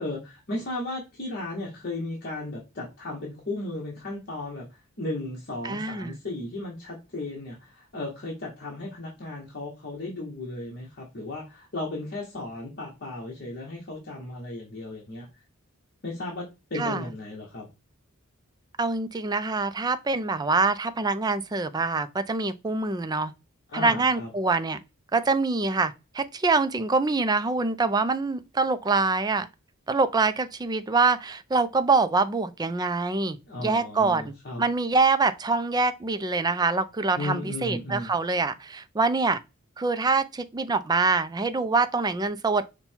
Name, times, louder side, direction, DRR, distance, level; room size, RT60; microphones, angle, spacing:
voice 1, 0.0-15.3 16.0-17.7 23.7-24.3 33.5-34.6 37.1-38.1, left 2 dB, 50° left, 1.2 m, -35 dB
voice 2, 5.6-6.2 16.7-17.1 18.8-23.3 23.7-24.8 25.1-29.5 29.9-39.4 39.8-42.6, right 3 dB, 20° right, 0.4 m, -25 dB
5.5 x 2.2 x 4.4 m
head